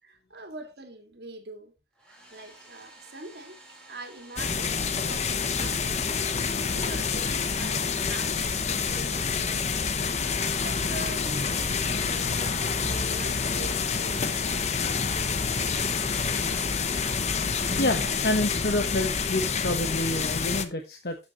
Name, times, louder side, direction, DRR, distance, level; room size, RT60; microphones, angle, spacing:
voice 1, 0.0-1.7 2.1-3.6 3.9-4.7 5.0-6.0 6.6-9.9 10.6-14.8, right 2 dB, 65° right, 2.1 m, -43 dB
Domestic sounds home sounds, 1.9-7.8, right 1 dB, 5° left, 3.2 m, -52 dB
sound 1, 4.4-20.6, left 5 dB, 40° left, 0.8 m, -28 dB
voice 2, 17.5-21.2, left 1 dB, 60° left, 1.1 m, -29 dB
12.0 x 7.4 x 3.0 m
head